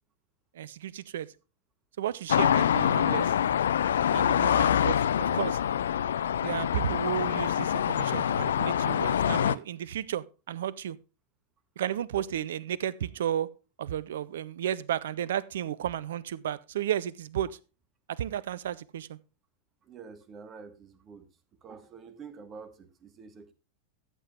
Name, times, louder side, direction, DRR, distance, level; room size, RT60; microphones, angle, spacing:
voice 1, 0.5-1.3 2.0-3.3 4.1-5.6 6.4-11.0 11.8-13.5 13.8-17.6 18.1-19.2, right 10 dB, 60° right, 0.5 m, -33 dB
sound 1, 2.3-9.6, left 9 dB, 65° left, 0.4 m, -25 dB
voice 2, 19.8-21.3 21.6-23.5, right 5 dB, 30° right, 1.4 m, -47 dB
13.5 x 7.6 x 3.5 m
figure-of-eight pair, 90°, 0 cm